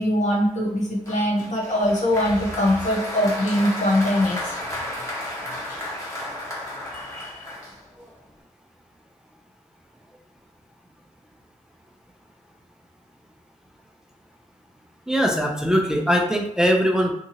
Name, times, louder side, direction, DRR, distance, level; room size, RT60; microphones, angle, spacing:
voice 1, 0.0-4.5 6.9-7.4, left 1 dB, 70° left, -2 dB, 0.8 m, -22 dB
Applause, 1.1-8.2, left 1 dB, 20° left, 0.9 m, -33 dB
voice 2, 15.1-17.1, equal, 5° right, 1 dB, 0.3 m, -21 dB
2.7 x 2.6 x 2.7 m, 0.77 s
wide cardioid pair, 115°, 13 cm